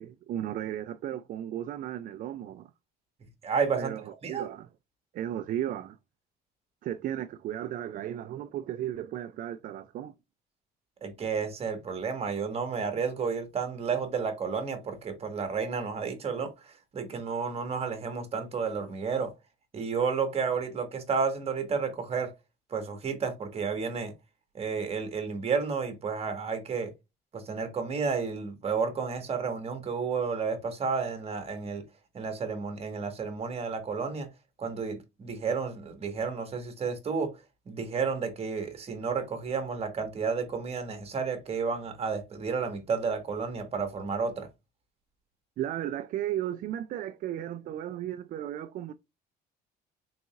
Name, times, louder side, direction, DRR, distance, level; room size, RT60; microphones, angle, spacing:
voice 1, 0.0-2.7 3.8-4.7 5.1-6.0 6.8-10.1 45.6-48.9, right 11 dB, 55° right, 0.4 m, -35 dB
voice 2, 3.4-3.9 4.2-4.5 11.0-19.3 19.7-22.3 22.7-24.1 24.5-26.9 27.3-31.8 32.1-34.3 34.6-37.3 37.7-44.5, right 5 dB, 35° right, 1.4 m, -31 dB
4.0 x 3.8 x 2.4 m
cardioid pair, 110°, 17 cm